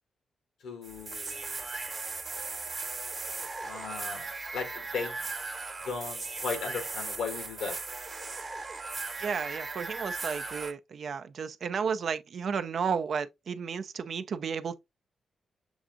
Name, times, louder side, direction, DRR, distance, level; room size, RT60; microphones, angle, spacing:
voice 1, 0.6-1.7 3.6-5.3 5.8-7.8, left 5 dB, 85° left, 1.3 m, -37 dB
sound 1, 0.8-10.7, right 3 dB, 45° right, 1.0 m, -37 dB
voice 2, 9.2-14.8, right 6 dB, 65° right, 0.5 m, -33 dB
7.0 x 2.5 x 2.6 m
supercardioid pair, 45°, 0 cm